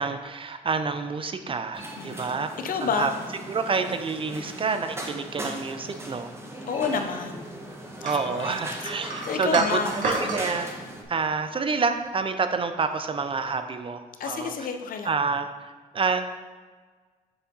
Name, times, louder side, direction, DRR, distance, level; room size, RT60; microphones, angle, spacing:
voice 1, 0.0-2.5 2.8-3.1 3.5-6.3 8.0-10.7 11.1-14.5 15.0-15.5 15.9-16.2, right 4 dB, 35° right, 8 dB, 0.5 m, -28 dB
sound 1, 1.7-11.0, right 1 dB, 15° right, 1.0 m, -39 dB
voice 2, 2.0-2.3 2.6-3.1 4.3-4.6 6.7-7.5 8.0-8.6 9.0-10.4 14.2-15.1, left 5 dB, 60° left, 6 dB, 0.6 m, -30 dB
sound 2, 8.0-10.4, right 2 dB, 55° right, 1.6 m, -31 dB
7.1 x 3.5 x 3.9 m, 1.4 s
cardioid pair, 75°, 16 cm